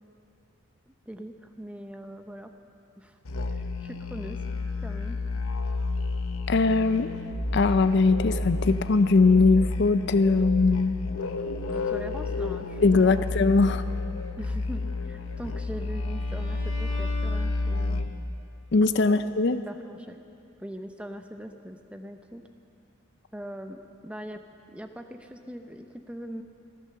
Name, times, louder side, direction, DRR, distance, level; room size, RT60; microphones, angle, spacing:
voice 1, 0.9-2.5 3.0-3.2 3.5-4.4 4.8-5.2 11.7-13.3 14.4-18.1 19.0-19.2 19.7-20.2 20.6-22.4 23.3-24.4 24.7-26.4, equal, 5° right, 6 dB, 0.6 m, -41 dB
Musical instrument, 3.2-18.3, left 2 dB, 80° left, 0.8 m, -31 dB
voice 2, 6.5-7.1 7.5-10.9 12.8-13.8 18.7-19.6, left 3 dB, 55° left, 12 dB, 0.4 m, -21 dB
Bowed string instrument, 15.0-18.2, left 3 dB, 25° left, 4.6 m, -45 dB
14.5 x 14.0 x 6.8 m, 2.7 s
head